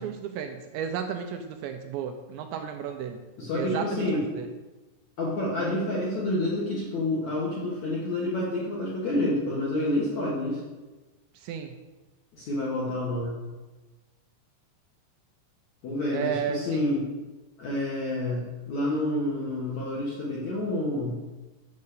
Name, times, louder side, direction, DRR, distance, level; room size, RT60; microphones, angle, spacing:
voice 1, 0.0-3.2 3.5-4.1 4.4-4.5 11.4-11.8 16.1-16.9, right 7 dB, 80° right, 6 dB, 2.6 m, -33 dB
voice 2, 3.4-4.2 5.2-10.6 12.3-13.4 15.8-17.0 17.6-21.2, left 1 dB, 60° left, -5 dB, 1.9 m, -28 dB
8.4 x 6.8 x 6.6 m, 1.2 s
omnidirectional pair, 5.7 m